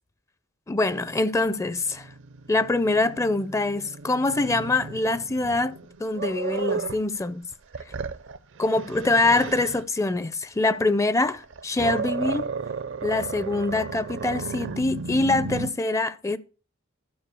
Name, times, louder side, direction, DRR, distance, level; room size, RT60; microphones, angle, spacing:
voice 1, 0.7-2.1 2.5-5.7 6.0-7.5 8.6-12.5 13.0-16.4, left 2 dB, 15° left, 0.4 m, -24 dB
Growling, 0.9-7.1 7.5-9.9 11.3-15.7, right 4 dB, 60° right, 0.6 m, -34 dB
12.0 x 4.6 x 6.9 m
head